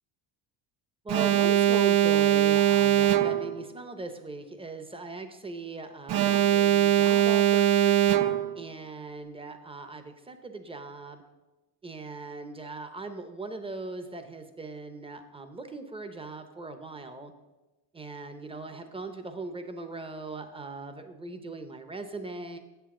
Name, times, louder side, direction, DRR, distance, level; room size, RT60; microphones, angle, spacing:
voice 1, 1.0-7.9 8.6-11.2 11.8-17.3 17.9-22.6, right 3 dB, 10° right, 8 dB, 0.7 m, -39 dB
Alarm, 1.1-3.6 6.1-8.6, right 12 dB, 50° right, 0.5 m, -22 dB
8.1 x 7.8 x 3.7 m, 1.1 s
cardioid pair, 105°, 49 cm